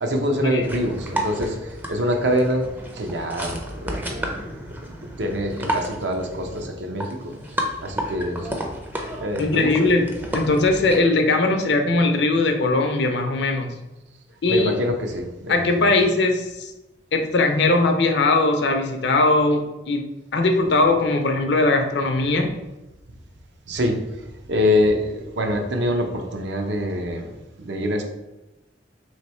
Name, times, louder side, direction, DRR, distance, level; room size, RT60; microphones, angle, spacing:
voice 1, 0.0-2.7 2.9-4.3 5.2-7.3 7.8-8.5 9.2-9.9 14.5-15.9 23.7-24.0 24.5-27.3 27.6-28.0, left 1 dB, 75° right, 3 dB, 0.7 m, -25 dB
sound 1, 0.6-11.0, equal, 10° right, 0.4 m, -32 dB
voice 2, 9.4-10.0 10.3-13.8 14.4-14.7 15.5-16.7 17.1-20.0 20.3-22.5, left 2 dB, 70° left, 5 dB, 0.6 m, -20 dB
3.2 x 3.0 x 4.3 m, 1.0 s
head